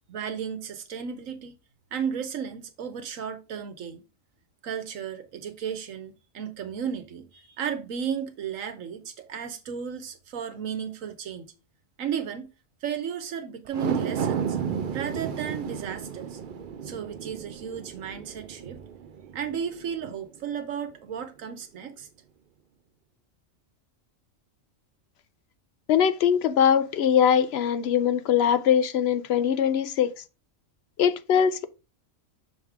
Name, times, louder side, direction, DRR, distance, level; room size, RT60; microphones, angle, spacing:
voice 1, 0.1-1.5 1.9-4.0 4.6-11.5 12.0-12.5 12.8-14.6 14.9-16.4 16.8-18.8 19.3-22.1, right 7 dB, 75° right, 1.2 m, -34 dB
sound 1, 13.7-20.2 20.6-20.7, right 7 dB, 55° right, 0.6 m, -33 dB
voice 2, 25.9-30.1 31.0-31.7, left 8 dB, 60° left, 0.7 m, -22 dB
6.3 x 3.6 x 4.6 m
omnidirectional pair, 1.4 m